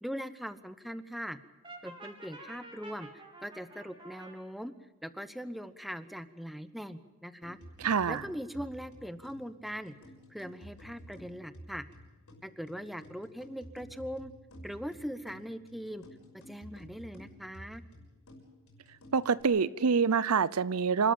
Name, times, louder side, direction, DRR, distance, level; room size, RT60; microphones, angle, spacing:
voice 1, 0.0-1.4 1.8-3.1 3.4-4.7 5.0-7.6 8.1-9.9 10.3-11.8 12.4-14.3 14.6-16.0 16.5-17.8, equal, ahead, 12 dB, 0.9 m, -41 dB
Brass instrument, 1.6-4.4, right 2 dB, 20° right, 3.8 m, -49 dB
sound 1, 7.4-19.4, equal, 75° left, 6.0 m, -52 dB
voice 2, 7.8-8.2 19.1-21.1, right 5 dB, 75° right, 19 dB, 0.6 m, -26 dB
27.5 x 13.0 x 8.8 m, 1.1 s
head